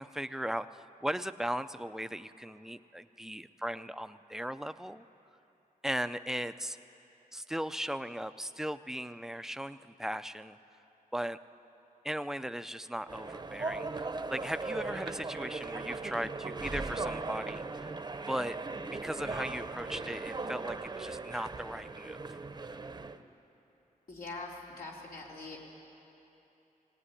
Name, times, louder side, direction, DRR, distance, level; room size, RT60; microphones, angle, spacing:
voice 1, 0.0-5.0 5.8-6.8 7.3-10.6 11.1-11.4 12.0-17.9 18.3-18.6 18.9-22.2, equal, 5° right, 11 dB, 0.5 m, -37 dB
sound 1, 13.1-23.2, right 3 dB, 30° right, 0.8 m, -38 dB
voice 2, 24.1-25.6, left 3 dB, 85° left, -3 dB, 3.9 m, -43 dB
19.5 x 18.0 x 9.9 m, 3.0 s
wide cardioid pair, 115°, 15 cm